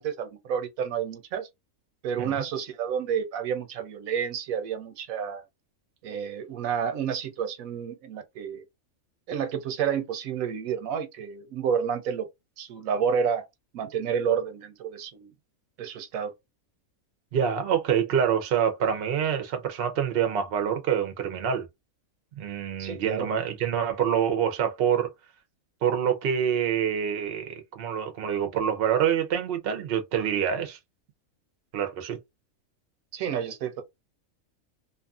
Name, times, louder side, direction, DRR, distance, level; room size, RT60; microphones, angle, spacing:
voice 1, 0.0-1.5 2.0-5.4 6.0-8.6 9.3-12.3 12.6-13.5 13.7-15.3 15.8-16.3 22.8-23.3 33.1-33.8, right 7 dB, 80° right, 1.0 m, -30 dB
voice 2, 17.3-21.7 22.3-25.1 25.8-30.8 31.7-32.2, right 8 dB, 55° right, 0.7 m, -26 dB
2.6 x 2.5 x 2.3 m
omnidirectional pair, 1.5 m